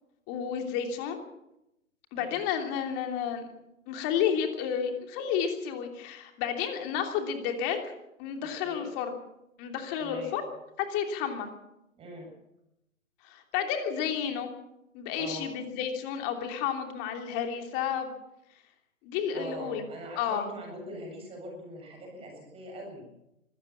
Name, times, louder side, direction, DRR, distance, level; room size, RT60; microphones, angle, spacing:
voice 1, 0.3-1.2 2.1-3.5 3.9-7.8 8.2-9.2 9.6-10.4 10.8-11.5 13.2-14.5 14.9-18.1 19.0-19.8 20.2-20.4, left 8 dB, 25° left, 5 dB, 3.1 m, -31 dB
voice 2, 10.0-10.4 12.0-12.3 15.1-15.5 19.3-23.1, right 1 dB, 15° right, 0 dB, 7.7 m, -42 dB
25.5 x 15.0 x 7.3 m, 0.86 s
figure-of-eight pair, 130°, 41 cm